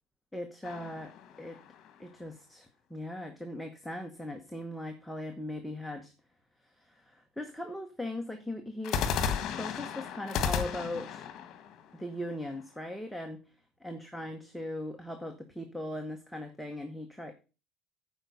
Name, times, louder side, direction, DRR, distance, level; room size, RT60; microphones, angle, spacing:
voice 1, 0.3-1.6 2.0-6.1 6.6-11.2 11.9-13.4 13.8-17.3, left 1 dB, ahead, 4 dB, 1.0 m, -39 dB
sound 1, 0.6-2.1 8.8-12.8, left 7 dB, 50° left, 1.4 m, -34 dB
9.0 x 5.2 x 6.6 m, 0.32 s
cardioid pair, 120°, 0 cm